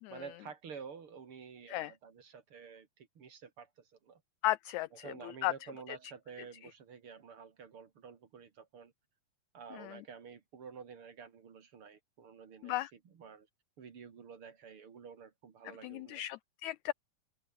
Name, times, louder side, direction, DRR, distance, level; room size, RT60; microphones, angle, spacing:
voice 1, 0.1-4.2 5.0-8.9 9.5-13.5 13.8-16.2, right 6 dB, 45° right, 2.7 m, -50 dB
voice 2, 4.4-5.5 5.9-6.0 9.7-10.0 12.6-12.9 15.8-16.9, left 16 dB, 90° left, 1.6 m, -35 dB
open air
omnidirectional pair, 3.8 m